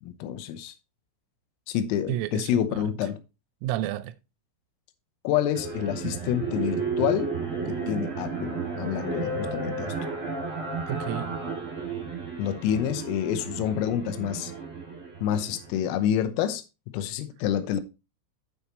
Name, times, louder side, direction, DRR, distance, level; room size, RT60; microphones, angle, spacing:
voice 1, 0.0-0.8 1.7-3.2 5.3-7.4 7.7-9.9 12.4-14.5 15.2-17.8, left 10 dB, 90° left, 3.5 m, -28 dB
voice 2, 2.1-2.9 3.6-4.1 10.9-11.4, right 13 dB, 85° right, 3.3 m, -31 dB
sound 1, 5.5-16.0, right 4 dB, 30° right, 1.5 m, -33 dB
8.6 x 6.7 x 3.0 m
omnidirectional pair, 5.9 m